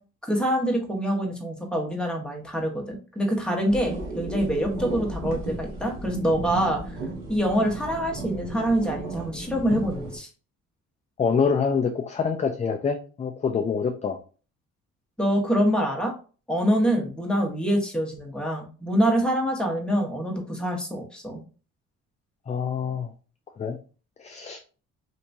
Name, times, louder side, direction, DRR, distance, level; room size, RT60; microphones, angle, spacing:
voice 1, 0.2-7.0 7.3-10.3 15.2-16.1 16.5-21.4, equal, 5° left, 0 dB, 1.1 m, -25 dB
sound 1, 3.7-10.2, right 2 dB, 90° right, 1.1 m, -34 dB
voice 2, 11.2-14.2 22.5-23.1 23.6-23.8 24.2-24.6, left 6 dB, 25° left, 5 dB, 0.4 m, -26 dB
3.5 x 2.8 x 2.6 m, 0.37 s
cardioid pair, 90°, 30 cm